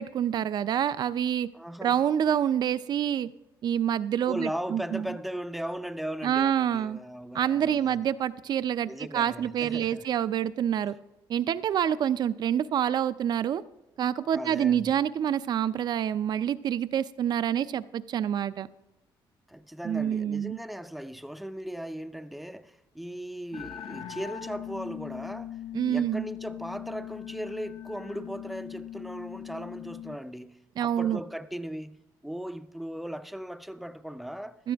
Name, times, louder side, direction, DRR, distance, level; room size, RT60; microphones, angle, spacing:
voice 1, 0.0-1.5 1.8-3.3 3.6-5.1 6.2-7.0 7.3-10.9 11.3-13.6 14.0-18.7 19.8-20.6 25.7-26.3 30.8-31.2 34.6-34.7, right 9 dB, 55° right, 0.5 m, -27 dB
voice 2, 1.5-2.0 4.3-8.0 8.8-10.1 14.3-15.0 19.5-32.0 32.2-34.6, equal, ahead, 0.5 m, -38 dB
sound 1, 23.5-30.2, left 11 dB, 85° left, 0.7 m, -40 dB
16.0 x 12.5 x 3.4 m
cardioid pair, 130°, 9 cm